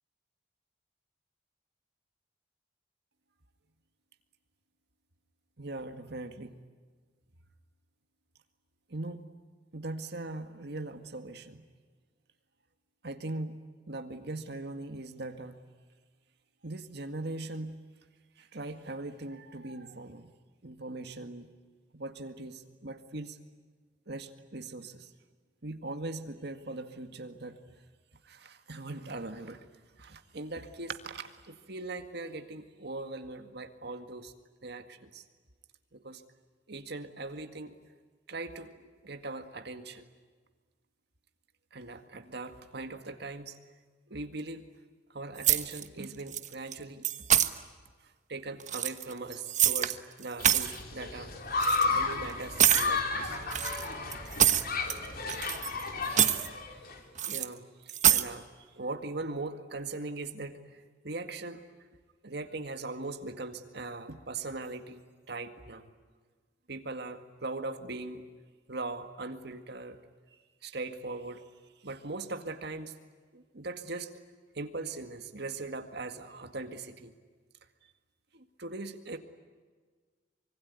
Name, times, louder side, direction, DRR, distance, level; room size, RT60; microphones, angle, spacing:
voice 1, 5.6-6.6 8.9-9.2 9.7-11.6 13.0-13.5 13.9-15.6 16.6-17.8 18.4-20.3 20.6-21.5 21.9-23.4 24.1-25.1 25.6-27.6 28.3-29.6 30.0-34.3 34.6-35.2 35.9-36.2 36.7-37.7 38.3-40.1 41.7-43.6 44.1-44.6 45.1-47.1 48.3-51.3 51.9-53.4 57.3-58.5 58.8-60.6 61.0-61.6 62.2-65.0 65.3-65.9 66.7-68.2 68.7-70.0 70.6-71.4 71.8-72.9 73.3-74.1 74.6-77.1 78.3-79.2, right 2 dB, 65° right, 7 dB, 2.0 m, -40 dB
sound 1, 45.4-46.0 46.3-46.7 47.0-47.5 48.6-49.9 50.2-50.8 51.6-51.8 52.6-52.9 53.5-55.0 55.3-55.8 56.1-56.5 57.2-57.5 57.9-58.3, right 10 dB, 40° right, 1.2 m, -25 dB
Human group actions, 50.4-57.0, left 3 dB, 55° left, 3.8 m, -33 dB
25.5 x 24.0 x 9.6 m, 1.5 s
head